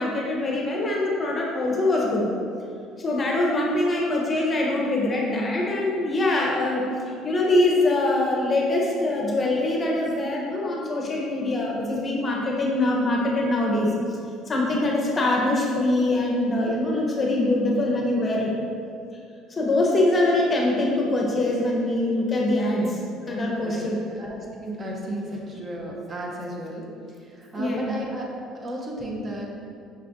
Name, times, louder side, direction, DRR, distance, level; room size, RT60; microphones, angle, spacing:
voice 1, 0.0-2.2 3.0-6.9 7.2-14.2 14.5-18.5 19.5-23.0 23.3-24.0 25.3-25.4 27.5-27.9, left 2 dB, 30° left, -2 dB, 0.8 m, -23 dB
voice 2, 23.2-26.8 27.4-28.3 28.6-29.5, right 1 dB, 30° right, -2 dB, 0.8 m, -34 dB
5.6 x 2.5 x 3.6 m, 2.4 s
supercardioid pair, 100°, 0 cm